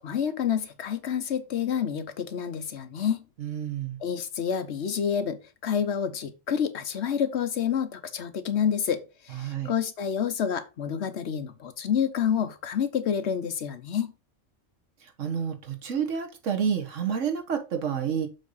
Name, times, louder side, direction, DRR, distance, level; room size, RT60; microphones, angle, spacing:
voice 1, 0.0-3.2 4.0-14.1, left 8 dB, 65° left, 1.1 m, -28 dB
voice 2, 3.4-4.0 9.3-9.7 15.0-18.3, right 7 dB, 90° right, 1.6 m, -29 dB
7.1 x 3.7 x 5.4 m
omnidirectional pair, 1.2 m